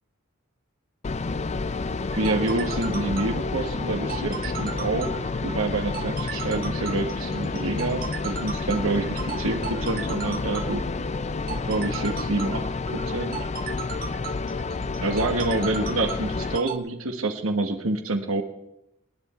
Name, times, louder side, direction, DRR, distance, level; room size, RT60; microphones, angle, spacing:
sound 1, 1.0-16.6, left 3 dB, 35° left, 0.5 m, -30 dB
sound 2, 2.0-16.8, right 8 dB, 45° right, 0.9 m, -37 dB
voice 1, 2.1-10.8 11.6-12.6 12.9-13.4 15.0-18.4, right 2 dB, 90° right, 4 dB, 1.6 m, -27 dB
sound 3, 3.3-8.1, right 1 dB, 65° right, 4.0 m, -47 dB
26.5 x 10.5 x 4.4 m, 0.87 s
head